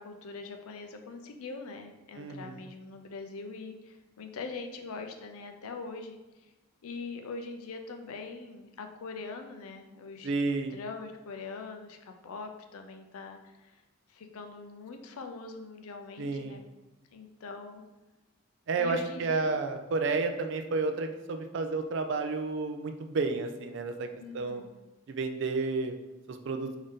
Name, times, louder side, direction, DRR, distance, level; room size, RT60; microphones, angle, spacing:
voice 1, 0.0-6.5 6.8-10.3 10.7-13.8 14.1-16.7 17.1-17.8 18.8-19.6 24.2-24.8, left 4 dB, 85° left, 5 dB, 0.5 m, -42 dB
voice 2, 2.2-2.6 10.2-10.8 16.2-16.6 18.7-24.6 25.1-25.9 26.3-26.7, right 3 dB, 55° right, 6 dB, 0.3 m, -31 dB
3.6 x 2.6 x 3.6 m, 1.1 s
head